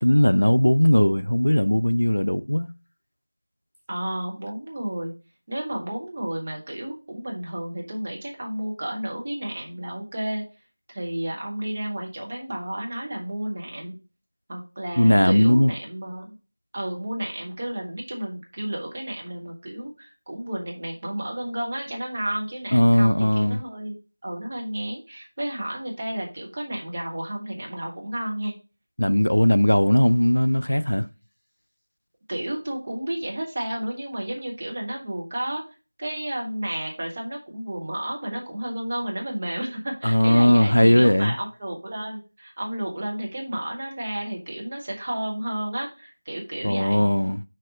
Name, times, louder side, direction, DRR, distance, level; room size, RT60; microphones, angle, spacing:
voice 1, 0.0-2.7 15.0-15.7 22.7-23.6 29.0-31.1 40.0-41.4 46.6-47.4, equal, 65° left, 0.5 m, -18 dB
voice 2, 3.9-5.1 5.5-10.4 10.9-14.0 14.5-16.3 16.7-23.9 24.2-28.5 32.3-35.6 36.0-47.1, right 1 dB, 20° right, 1.1 m, -32 dB
6.4 x 4.2 x 5.2 m
figure-of-eight pair, 175°, 0 cm